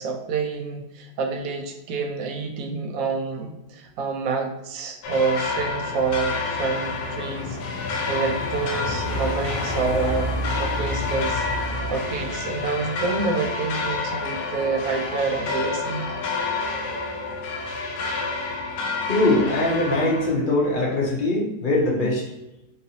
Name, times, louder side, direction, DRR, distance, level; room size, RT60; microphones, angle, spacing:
voice 1, 0.0-7.6 8.1-10.3 10.6-11.5 11.9-16.3, right 4 dB, 70° right, 4 dB, 0.9 m, -27 dB
sound 1, 5.0-20.3, left 3 dB, 80° left, 1.1 m, -28 dB
voice 2, 19.1-22.2, left 2 dB, 55° left, -3 dB, 0.6 m, -21 dB
3.9 x 2.6 x 2.7 m, 0.91 s
omnidirectional pair, 1.8 m